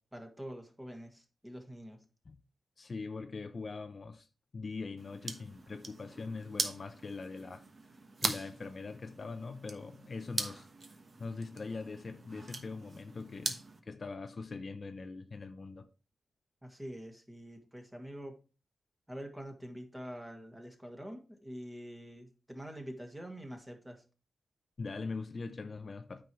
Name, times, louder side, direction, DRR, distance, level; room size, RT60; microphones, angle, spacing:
voice 1, 0.1-2.0 16.6-18.4 19.1-24.0, equal, 10° right, 1.8 m, -46 dB
voice 2, 2.8-4.3 4.5-7.6 8.2-15.9 24.8-26.2, left 4 dB, 40° left, 0.6 m, -42 dB
sound 1, 5.0-13.8, right 3 dB, 40° right, 1.2 m, -41 dB
9.2 x 4.6 x 4.8 m
wide cardioid pair, 125°, 0 cm